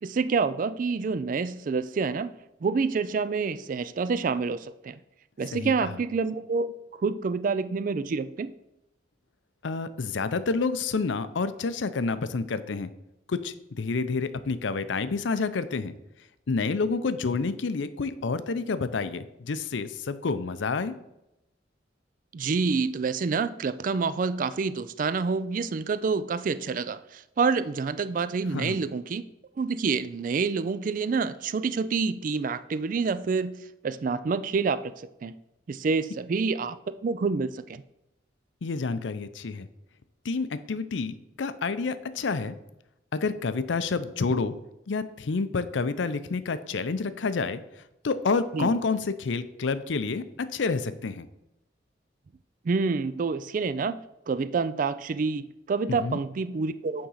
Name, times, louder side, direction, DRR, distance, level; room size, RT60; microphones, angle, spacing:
voice 1, 0.0-2.4 2.6-5.0 5.4-8.5 22.3-29.3 29.6-34.9 35.2-35.4 35.7-37.8 48.5-48.8 52.6-54.0 54.3-57.1, right 4 dB, 45° right, 14 dB, 0.3 m, -28 dB
voice 2, 5.5-5.9 9.6-12.9 13.3-15.9 16.5-20.9 28.5-28.8 38.6-39.7 40.2-42.5 43.1-44.5 44.9-47.6 48.0-51.3 55.9-56.2, left 4 dB, 75° left, 13 dB, 0.5 m, -29 dB
8.6 x 3.7 x 5.5 m, 0.87 s
head